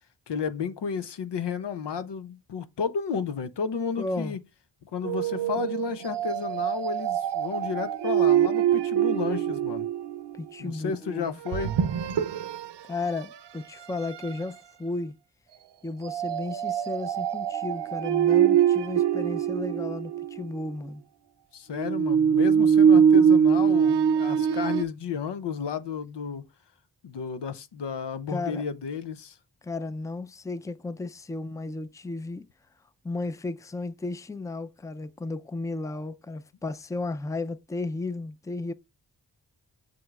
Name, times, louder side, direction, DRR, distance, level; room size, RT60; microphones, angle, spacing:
voice 1, 0.3-4.4 4.9-9.9 10.6-11.8 21.5-26.5 27.0-29.4, left 6 dB, 85° left, 0.7 m, -32 dB
voice 2, 4.0-4.4 10.3-11.3 12.9-15.1 15.8-21.0 28.3-28.6 29.6-32.5 33.0-38.7, left 3 dB, 10° left, 0.4 m, -34 dB
sound 1, 5.0-10.3 11.5-12.7 13.2-13.3 13.9-14.4 16.0-20.5 21.7-24.8, right 8 dB, 80° right, 0.6 m, -23 dB
7.7 x 5.3 x 2.4 m
cardioid pair, 50°, 41 cm